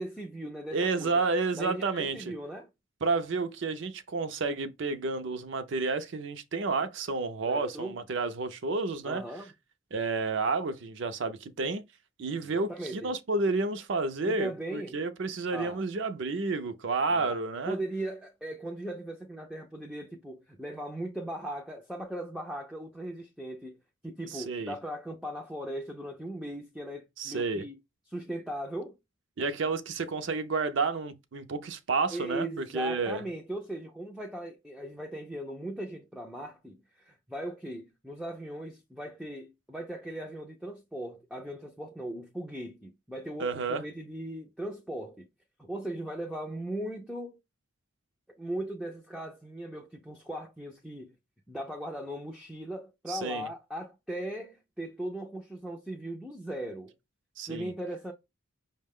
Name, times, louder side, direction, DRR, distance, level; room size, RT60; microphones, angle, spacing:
voice 1, 0.0-1.2 1.5-2.7 7.4-8.0 9.0-9.5 12.5-13.1 14.2-15.0 15.5-15.8 17.1-17.4 17.7-23.8 24.0-27.8 28.1-29.0 32.1-45.3 45.6-47.4 48.4-51.1 51.5-56.9 57.5-58.1, right 1 dB, ahead, 0.4 m, -38 dB
voice 2, 0.7-2.3 3.0-9.2 9.9-11.8 12.2-17.8 24.3-24.7 27.2-27.7 29.4-33.2 43.4-43.8 53.1-53.5 57.4-57.7, right 3 dB, 60° right, 0.5 m, -30 dB
5.5 x 2.1 x 3.5 m
head